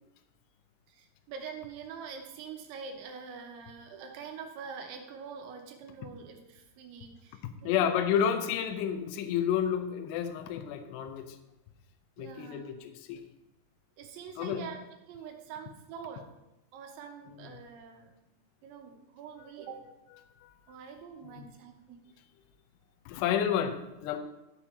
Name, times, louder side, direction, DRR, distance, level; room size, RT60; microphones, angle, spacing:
voice 1, 0.9-7.9 12.2-12.7 14.0-16.3 16.7-18.1 18.6-19.9 20.7-22.0, right 6 dB, 80° right, 4 dB, 3.3 m, -45 dB
voice 2, 7.6-11.4 12.2-13.2 14.4-14.6 17.3-17.6 20.4-20.5 21.2-21.5 23.1-24.2, left 9 dB, 80° left, 6 dB, 2.6 m, -30 dB
13.0 x 8.9 x 2.8 m, 0.94 s
omnidirectional pair, 5.5 m